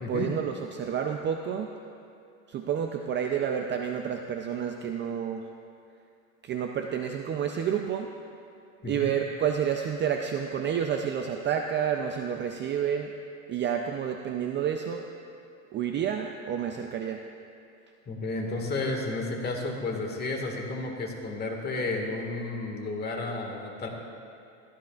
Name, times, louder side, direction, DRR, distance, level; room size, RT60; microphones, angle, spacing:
voice 1, 0.1-1.7 2.5-5.4 6.4-8.1 8.8-13.1 13.5-15.1 15.7-17.2, right 8 dB, 30° right, 4 dB, 0.4 m, -29 dB
voice 2, 18.1-23.9, left 2 dB, 25° left, 1 dB, 1.7 m, -32 dB
16.0 x 13.0 x 2.4 m, 2.7 s
supercardioid pair, 125°, 41 cm